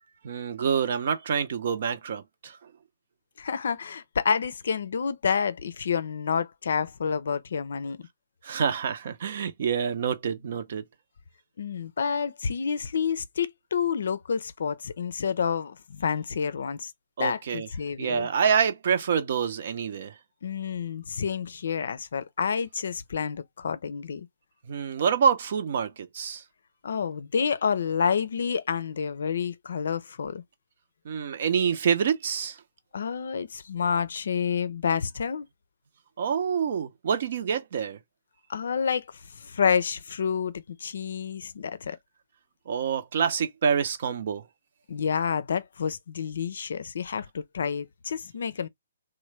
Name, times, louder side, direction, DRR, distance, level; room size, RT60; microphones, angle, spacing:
voice 1, 0.2-2.6 8.4-10.8 17.2-17.7 18.0-20.1 24.7-26.4 31.0-32.6 36.2-38.0 42.7-44.4, right 7 dB, 55° right, 0.6 m, -27 dB
voice 2, 3.4-8.1 11.6-16.9 17.2-18.3 20.4-24.3 26.8-30.4 32.9-35.5 38.5-39.1 39.3-42.0 44.9-48.7, left 6 dB, 70° left, 0.5 m, -29 dB
3.1 x 2.2 x 3.1 m
hypercardioid pair, 135°, 0 cm